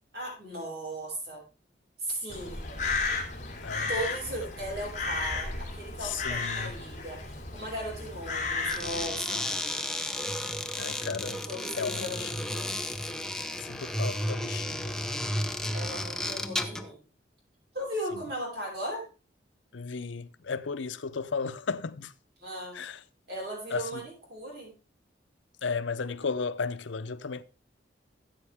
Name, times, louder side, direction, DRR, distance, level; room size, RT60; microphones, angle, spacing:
voice 1, 0.1-1.4 2.0-2.7 3.9-9.8 11.4-12.8 15.7-17.0 17.7-19.1 22.4-22.8 23.3-24.7, equal, 60° right, 6.8 m, -37 dB
Crow, 2.3-9.1, left 3 dB, 40° left, 2.9 m, -34 dB
voice 2, 6.0-6.7 10.8-11.4 11.8-12.3 13.6-15.0 19.7-22.1 22.7-23.0 23.7-24.0 25.6-27.4, left 5 dB, 90° left, 0.7 m, -34 dB
sound 1, 8.6-16.9, left 1 dB, 5° left, 0.7 m, -33 dB
14.5 x 8.2 x 3.5 m
head